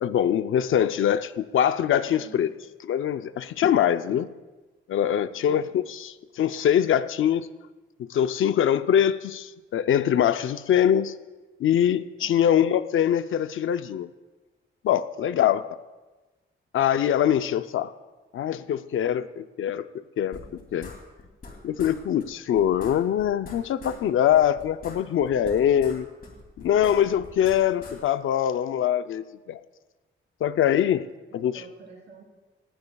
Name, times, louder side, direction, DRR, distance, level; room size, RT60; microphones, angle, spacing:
voice 1, 0.0-2.5 2.9-4.3 4.9-7.5 8.0-11.1 11.6-14.1 14.8-15.7 16.7-17.9 18.3-20.4 20.7-20.9 21.6-26.1 26.6-29.6 30.4-31.1 31.3-31.6, left 10 dB, 80° left, 12 dB, 0.5 m, -23 dB
voice 2, 2.1-2.5 5.3-5.7 12.2-12.5 31.3-32.2, right 4 dB, 60° right, 0 dB, 3.1 m, -49 dB
sound 1, 20.3-21.5 21.8-22.0 22.2-22.3 22.5-24.0 24.3-26.0 26.2-28.0, left 3 dB, 45° left, 2.8 m, -43 dB
19.0 x 16.0 x 2.3 m, 1.2 s
wide cardioid pair, 160°, 21 cm